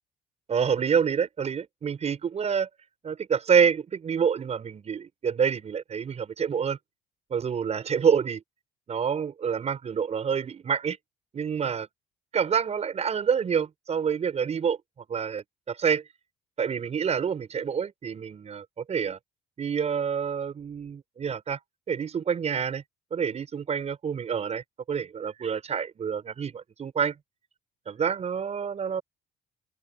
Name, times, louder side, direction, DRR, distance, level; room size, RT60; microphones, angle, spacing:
voice 1, 0.5-2.7 3.0-6.8 7.3-8.4 8.9-11.0 11.3-11.9 12.3-14.8 15.1-16.0 16.6-19.2 19.6-21.6 21.9-22.8 23.1-27.2 27.9-29.0, right 7 dB, 40° right, 6.1 m, -27 dB
open air
cardioid pair, 110°, 17 cm